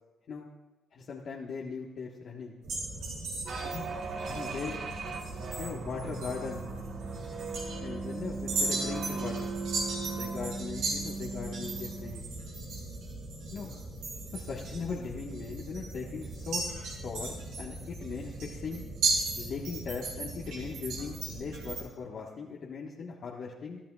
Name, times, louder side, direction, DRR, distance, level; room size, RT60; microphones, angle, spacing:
voice 1, 0.9-2.6 3.6-3.8 4.3-4.8 5.6-6.7 7.8-9.5 10.1-12.3 13.5-13.7 14.3-16.6 17.0-18.8 19.4-23.8, left 5 dB, 60° left, -3 dB, 1.5 m, -39 dB
sound 1, 2.6-21.8, right 3 dB, 85° right, 5.3 m, -37 dB
sound 2, 3.4-12.2, right 4 dB, 60° right, 1.4 m, -38 dB
22.0 x 12.5 x 2.4 m, 1.1 s
cardioid pair, 90°, 0 cm